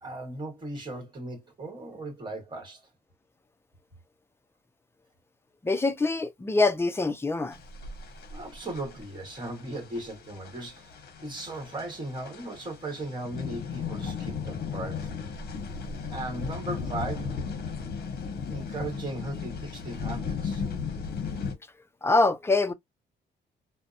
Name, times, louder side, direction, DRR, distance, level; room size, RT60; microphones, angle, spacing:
voice 1, 0.0-2.9 8.3-15.1 16.1-17.5 18.5-20.6, right 2 dB, 25° right, 1.1 m, -37 dB
voice 2, 5.6-7.6 22.0-22.7, left 3 dB, 15° left, 0.4 m, -24 dB
sound 1, 7.5-21.5, left 5 dB, 55° left, 0.8 m, -36 dB
2.7 x 2.1 x 2.3 m
cardioid pair, 110°, 19 cm